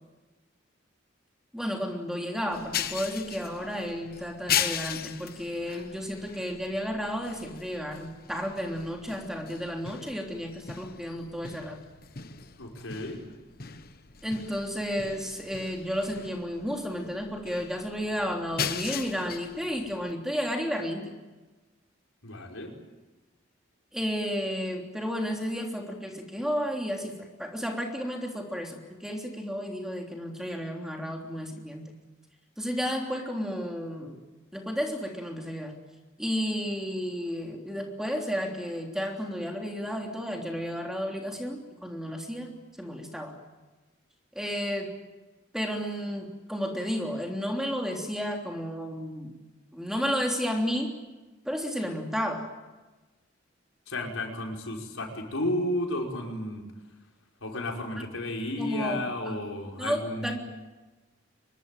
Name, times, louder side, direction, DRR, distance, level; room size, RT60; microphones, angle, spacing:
voice 1, 1.5-11.8 14.2-21.1 23.9-31.9 32.6-34.2 34.5-35.8 36.2-42.5 42.8-43.4 44.3-44.9 45.5-49.3 49.7-51.0 51.4-52.5 58.6-59.0 59.2-59.4 59.8-60.4, equal, 5° right, 2 dB, 3.3 m, -32 dB
sound 1, 2.5-20.1, left 8 dB, 45° left, 1.2 m, -38 dB
voice 2, 12.6-13.2 22.2-22.7 53.9-56.7 57.4-60.4, left 1 dB, 90° left, 2 dB, 5.4 m, -32 dB
25.0 x 22.5 x 9.1 m, 1.2 s
head